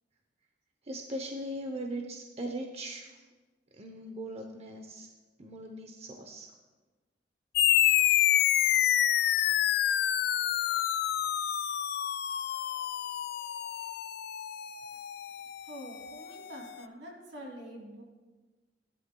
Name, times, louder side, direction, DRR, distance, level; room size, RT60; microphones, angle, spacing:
voice 1, 0.8-3.3 3.7-5.1 5.4-6.5, right 1 dB, 35° right, 3 dB, 0.7 m, -39 dB
sound 1, 7.6-16.4, left 11 dB, 60° left, 0.3 m, -28 dB
voice 2, 15.6-18.0, equal, 80° right, -1 dB, 2.7 m, -45 dB
17.5 x 11.0 x 2.3 m, 1.3 s
head